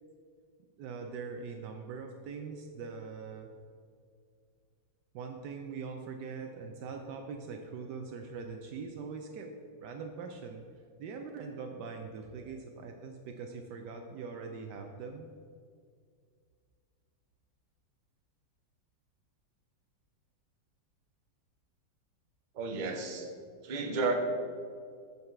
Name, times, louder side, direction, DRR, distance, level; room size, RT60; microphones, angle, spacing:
voice 1, 0.8-3.5 5.1-9.5 9.8-10.6 11.0-15.3, right 5 dB, 75° right, 4 dB, 1.2 m, -42 dB
voice 2, 22.6-23.3 23.6-24.1, right 3 dB, 40° right, 2 dB, 0.6 m, -32 dB
8.0 x 5.5 x 4.5 m, 2.2 s
omnidirectional pair, 1.9 m